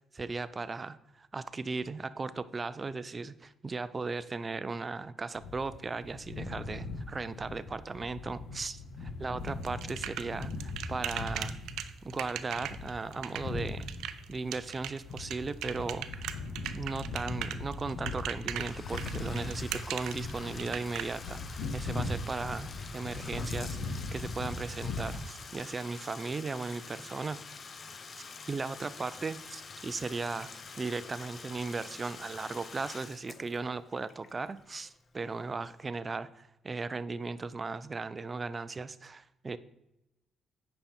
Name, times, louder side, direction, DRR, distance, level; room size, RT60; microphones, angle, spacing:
voice 1, 0.1-11.6 12.0-13.9 14.3-16.1 16.7-27.4 28.5-30.5 30.8-39.6, right 4 dB, 30° right, 15 dB, 0.5 m, -37 dB
sound 1, 5.4-25.2, left 3 dB, 80° left, 1.2 m, -39 dB
sound 2, 9.5-21.0, right 11 dB, 85° right, 0.5 m, -38 dB
Bathtub (filling or washing), 18.5-35.2, left 5 dB, 45° left, 0.7 m, -47 dB
8.9 x 5.5 x 4.4 m, 0.90 s
cardioid pair, 90°, 0 cm